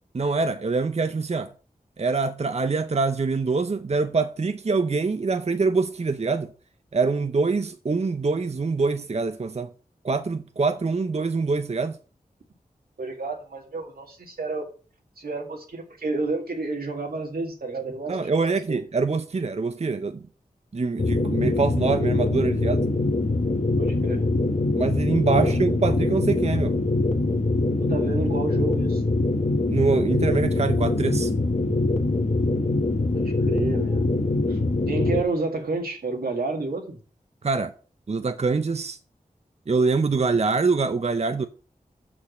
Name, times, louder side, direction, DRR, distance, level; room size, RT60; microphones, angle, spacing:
voice 1, 0.1-1.5 2.0-6.5 6.9-9.7 10.0-12.0 18.1-20.2 20.7-22.9 24.8-26.7 29.7-31.3 37.4-37.7 38.1-39.0 39.7-41.5, right 4 dB, 45° right, 0.6 m, -24 dB
voice 2, 13.0-14.7 15.2-18.8 23.8-24.3 25.4-25.6 27.8-29.0 33.1-34.1 34.5-34.6 34.9-37.0, right 3 dB, 85° right, 2.1 m, -30 dB
sound 1, 21.0-35.2, left 2 dB, 50° left, 1.1 m, -23 dB
6.2 x 6.0 x 6.4 m
wide cardioid pair, 50°, 15 cm